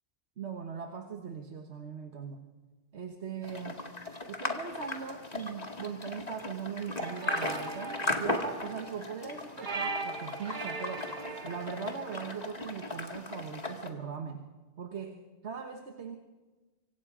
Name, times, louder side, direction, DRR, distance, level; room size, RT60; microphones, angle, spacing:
voice 1, 0.4-2.4 2.9-3.8 4.3-11.1 11.4-14.4 14.8-15.2 15.4-16.2, right 6 dB, 75° right, 4 dB, 1.5 m, -40 dB
sound 1, 3.4-13.9, left 2 dB, 35° left, 2.0 m, -37 dB
sound 2, 7.0-13.0, right 4 dB, 45° right, 1.6 m, -40 dB
26.0 x 24.5 x 5.0 m, 1.2 s
omnidirectional pair, 1.1 m